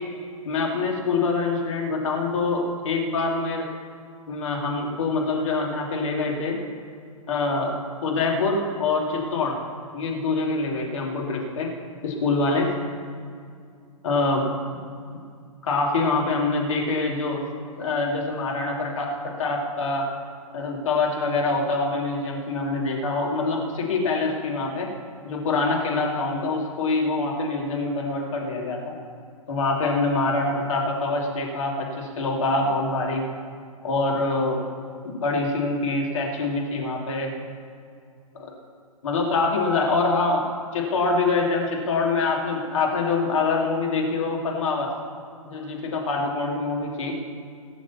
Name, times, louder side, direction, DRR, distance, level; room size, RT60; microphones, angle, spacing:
voice 1, 0.4-3.7 4.3-6.6 7.3-7.7 8.0-9.6 9.9-11.7 12.0-12.7 14.0-14.5 15.6-17.4 17.8-20.1 20.5-24.9 25.2-28.9 29.5-33.2 33.8-34.6 35.0-37.3 38.3-38.5 39.0-40.5 40.7-44.9 45.4-47.1, left 3 dB, 60° left, -1 dB, 2.9 m, -25 dB
18.0 x 7.1 x 7.2 m, 2.3 s
figure-of-eight pair, 115°, 18 cm